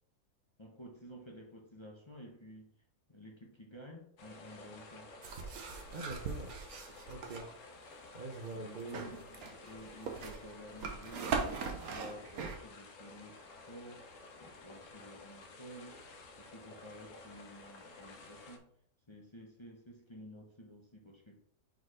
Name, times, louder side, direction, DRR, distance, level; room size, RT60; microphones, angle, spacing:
voice 1, 0.6-2.7 3.1-5.1 8.5-11.4 11.7-14.1 14.4-16.0 16.4-18.7 19.1-21.4, equal, 25° left, -1 dB, 0.9 m, -52 dB
sound 1, 4.2-18.6, left 3 dB, 65° left, 1.1 m, -53 dB
sound 2, 5.2-7.5 8.8-12.6, right 5 dB, 75° right, 1.4 m, -40 dB
voice 2, 5.9-6.5 7.1-7.5 8.1-9.2, right 3 dB, 45° right, 1 dB, 0.7 m, -44 dB
4.7 x 4.2 x 4.9 m, 0.65 s
omnidirectional pair, 1.6 m